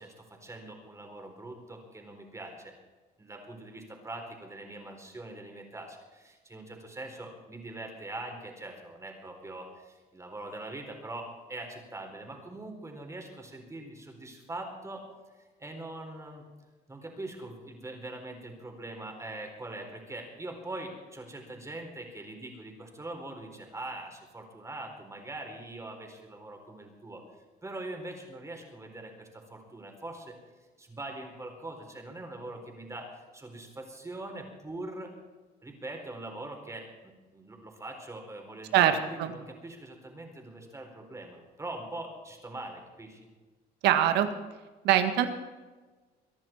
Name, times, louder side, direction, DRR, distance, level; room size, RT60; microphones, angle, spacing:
voice 1, 0.0-2.7 3.2-15.0 15.3-16.4 16.9-27.2 27.6-30.4 30.8-33.1 33.3-35.1 35.6-43.2, right 2 dB, 15° right, 3 dB, 4.2 m, -42 dB
voice 2, 43.8-44.3 44.8-45.3, right 11 dB, 85° right, 8 dB, 1.8 m, -22 dB
24.0 x 10.5 x 4.6 m, 1.3 s
cardioid pair, 110°, 17 cm